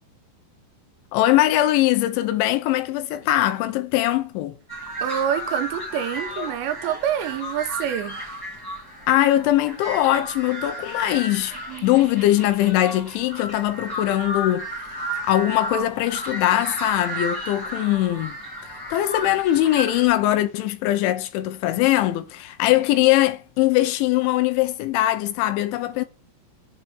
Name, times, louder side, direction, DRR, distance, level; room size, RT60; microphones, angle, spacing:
voice 1, 1.1-4.6 9.1-11.5 11.8-14.7 15.3-18.3 18.9-26.1, left 14 dB, 80° left, 3.3 m, -21 dB
sound 1, 4.7-20.1, equal, 20° left, 0.6 m, -33 dB
voice 2, 5.0-8.4 11.7-11.9, right 10 dB, 80° right, 3.0 m, -27 dB
7.8 x 4.6 x 6.8 m
omnidirectional pair, 5.4 m